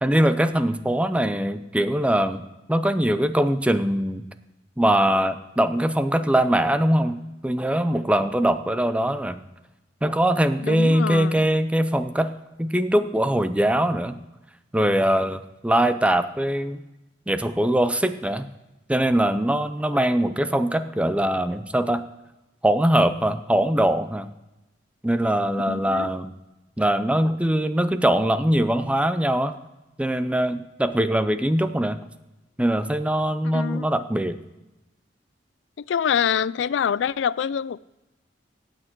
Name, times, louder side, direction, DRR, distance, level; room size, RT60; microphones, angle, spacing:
voice 1, 0.0-2.4 2.7-4.2 4.8-9.4 10.0-12.3 12.6-14.2 14.7-16.8 17.3-18.5 18.9-22.0 22.6-24.3 25.0-26.3 26.8-29.6 30.0-32.0 32.6-34.4, right 1 dB, 5° right, 11 dB, 0.5 m, -22 dB
voice 2, 10.6-11.4 25.7-26.1 33.5-33.9 35.8-37.8, left 8 dB, 85° left, 20 dB, 0.3 m, -25 dB
17.5 x 6.6 x 4.5 m, 0.99 s
head